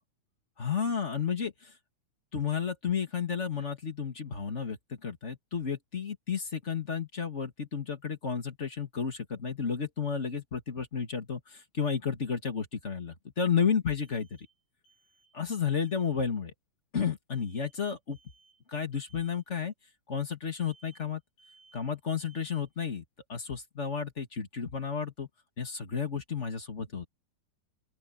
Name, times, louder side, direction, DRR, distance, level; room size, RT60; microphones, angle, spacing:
voice 1, 0.6-1.7 2.3-14.5 15.3-16.5 16.9-18.2 18.7-19.7 20.1-21.2 21.7-23.0 23.3-25.3 25.6-27.1, left 6 dB, 30° left, 1.4 m, -32 dB
sound 1, 14.0-14.6 14.8-15.4 15.7-16.2 17.3-17.8 18.1-18.6 18.9-19.4 20.6-21.1 21.4-21.9 22.2-22.8, right 4 dB, 80° left, 6.1 m, -62 dB
open air
omnidirectional pair, 4.2 m